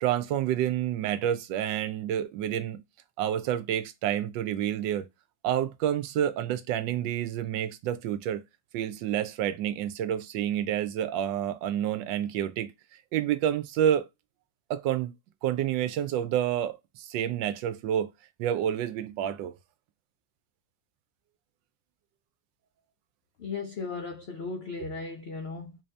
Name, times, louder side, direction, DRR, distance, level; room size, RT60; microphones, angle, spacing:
voice 1, 0.0-2.8 3.2-5.0 5.4-8.4 8.7-12.7 13.1-14.0 14.7-15.2 15.4-18.1 18.4-19.5, right 10 dB, 90° right, 1.3 m, -29 dB
voice 2, 23.4-25.8, left 4 dB, 75° left, 0.5 m, -36 dB
3.9 x 2.7 x 3.2 m
omnidirectional pair, 1.9 m